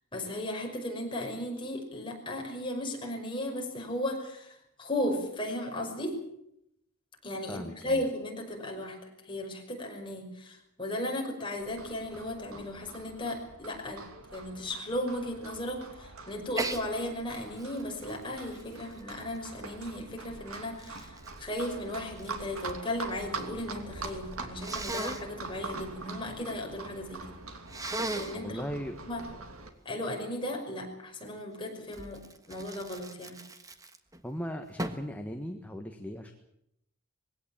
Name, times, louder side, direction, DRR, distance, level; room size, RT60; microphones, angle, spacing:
voice 1, 0.1-6.2 7.2-27.4 27.9-28.6 29.1-29.3 29.8-33.4, left 1 dB, 25° left, 1 dB, 5.6 m, -36 dB
voice 2, 7.5-8.0 28.3-28.9 34.2-36.3, equal, 5° left, 4 dB, 1.4 m, -38 dB
Livestock farm animals working animals, 11.6-29.7, right 3 dB, 80° right, 2.8 m, -44 dB
Sneeze, 16.5-16.8 17.3-19.7 20.4-22.8 23.1-23.7 24.6-25.2 27.7-28.4 31.9-34.2 34.8-35.1, right 2 dB, 15° right, 1.5 m, -38 dB
21.5 x 17.5 x 8.9 m, 0.78 s
head